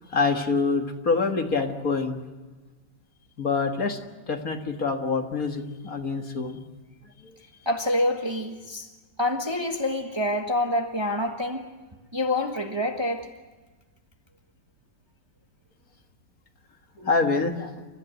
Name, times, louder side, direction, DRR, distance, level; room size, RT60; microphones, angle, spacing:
voice 1, 0.1-2.2 3.4-4.0 4.3-6.6 7.2-7.4 17.0-17.7, left 4 dB, 50° left, 2.1 m, -26 dB
voice 2, 7.6-8.9 9.2-11.7 12.1-13.3, left 1 dB, 15° right, 1.4 m, -26 dB
29.5 x 14.5 x 9.1 m
omnidirectional pair, 1.9 m